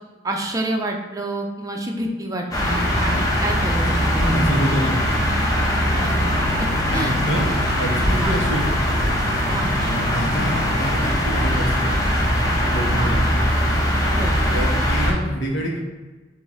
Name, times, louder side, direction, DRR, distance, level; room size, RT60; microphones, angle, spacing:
voice 1, 0.2-4.7 6.0-6.1 6.6-6.7 6.9-7.2 8.2-8.4 9.5-9.7 12.9-13.2 14.1-14.3, right 1 dB, 20° right, 2 dB, 0.4 m, -28 dB
sound 1, 2.5-15.1, equal, 20° left, 0.7 m, -21 dB
voice 2, 4.1-5.2 6.9-7.5 7.8-8.8 9.8-11.9 12.6-13.4 14.5-15.8, equal, 85° left, -2 dB, 1.1 m, -26 dB
5.2 x 2.6 x 3.5 m, 1.2 s
head